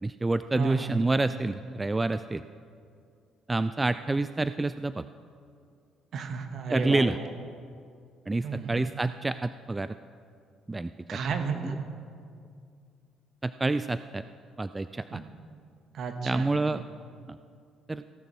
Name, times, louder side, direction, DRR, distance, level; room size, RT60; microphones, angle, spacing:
voice 1, 0.0-2.4 3.5-5.1 6.7-7.2 8.3-10.0 10.7-11.2 11.6-11.7 13.4-14.2 14.6-15.2 16.2-16.8 17.3-17.4 17.9-18.0, right 2 dB, 20° right, 13 dB, 0.3 m, -28 dB
voice 2, 0.6-1.0 6.1-7.1 8.4-8.8 11.1-11.8 15.1-15.2 15.9-16.8, right 5 dB, 55° right, 7 dB, 1.2 m, -33 dB
16.0 x 6.6 x 6.2 m, 2.4 s
hypercardioid pair, 50°, 0 cm